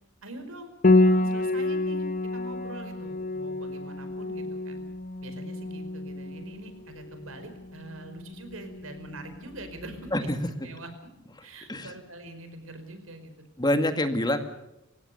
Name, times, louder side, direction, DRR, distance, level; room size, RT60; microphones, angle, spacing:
voice 1, 0.2-0.7 1.0-2.1 2.3-4.8 5.2-10.3 10.6-10.9 11.4-13.3, right 2 dB, 90° right, 8 dB, 5.0 m, -44 dB
Piano, 0.8-10.2, left 2 dB, 40° left, 1.1 m, -28 dB
voice 2, 13.6-14.4, left 1 dB, 20° left, 7 dB, 2.0 m, -25 dB
28.5 x 16.5 x 6.9 m, 0.91 s
head